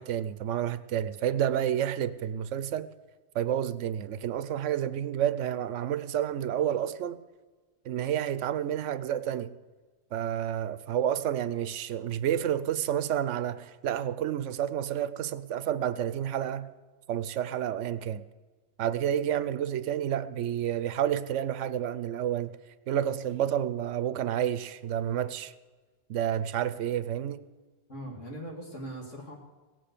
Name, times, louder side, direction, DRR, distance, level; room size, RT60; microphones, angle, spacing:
voice 1, 0.0-2.9 3.3-7.2 7.8-9.6 10.1-16.7 17.1-18.2 18.8-22.6 22.9-25.5 26.1-27.4, right 10 dB, 80° right, 14 dB, 1.0 m, -30 dB
voice 2, 27.9-29.4, right 1 dB, 85° left, 0 dB, 2.8 m, -40 dB
17.0 x 7.6 x 6.8 m, 1.3 s
omnidirectional pair, 1.2 m